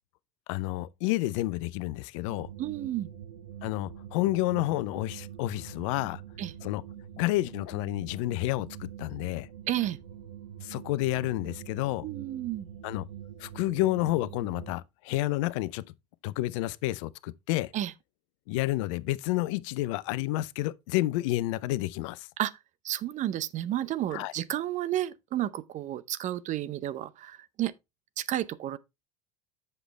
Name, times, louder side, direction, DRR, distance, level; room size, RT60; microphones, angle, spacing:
voice 1, 0.5-2.5 3.6-6.2 6.6-6.8 7.2-9.5 10.6-12.1 12.8-13.0 13.4-15.9 16.2-17.7 18.5-22.3 24.1-24.3, left 17 dB, 65° left, 0.5 m, -30 dB
sound 1, 2.3-14.7, right 10 dB, 75° right, 1.0 m, -45 dB
voice 2, 2.6-3.1 6.4-6.5 9.7-10.0 12.0-12.7 17.7-17.9 22.4-22.5 22.8-27.7 28.2-28.8, right 13 dB, 45° right, 0.7 m, -31 dB
8.0 x 6.7 x 3.2 m
hypercardioid pair, 75°, 17 cm